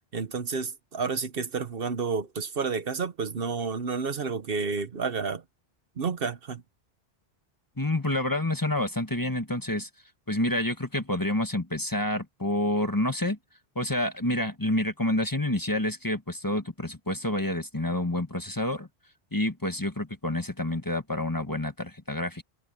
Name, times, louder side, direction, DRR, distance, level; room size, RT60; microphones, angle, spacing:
voice 1, 0.1-5.4 6.0-6.6, right 5 dB, 60° right, 1.2 m, -30 dB
voice 2, 7.8-9.9 10.3-13.4 13.7-18.9 19.3-22.4, left 1 dB, 20° left, 1.3 m, -28 dB
omnidirectional pair, 1.1 m